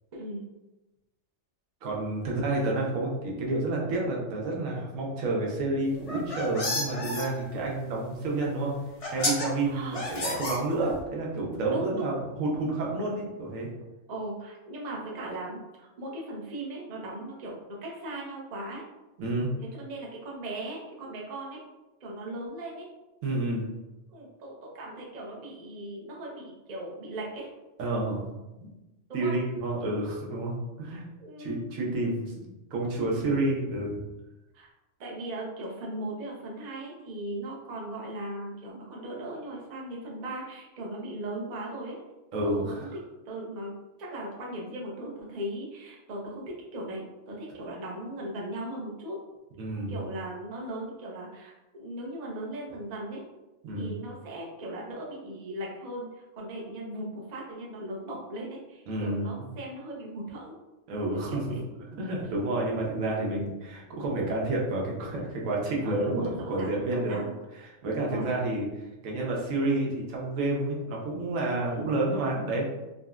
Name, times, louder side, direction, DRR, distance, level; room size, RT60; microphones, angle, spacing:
voice 1, 0.1-0.5 9.7-10.0 11.7-12.2 14.1-18.8 19.7-21.6 22.0-22.9 24.1-27.5 29.1-29.3 31.2-31.7 32.1-32.2 33.0-33.2 34.5-34.7 35.0-42.0 42.4-42.9 43.2-43.7 44.0-49.2 49.9-53.2 53.8-60.5 61.1-61.6 65.8-67.3 68.0-68.3 71.6-71.9, right 1 dB, 45° right, -3 dB, 0.6 m, -38 dB
voice 2, 1.8-8.7 9.1-13.7 19.2-19.5 23.2-23.7 27.8-28.2 28.6-28.7 29.1-31.1 31.4-34.0 42.3-42.9 49.6-50.0 53.6-54.0 58.9-59.5 60.9-61.6 62.0-67.2 67.6-68.7 69.0-72.7, right 2 dB, 90° right, -2 dB, 1.1 m, -29 dB
sound 1, 6.0-7.3 8.4-8.5 9.0-9.5 9.9-11.0, left 2 dB, 50° left, 0.4 m, -31 dB
3.8 x 2.1 x 2.3 m, 1.0 s
omnidirectional pair, 1.3 m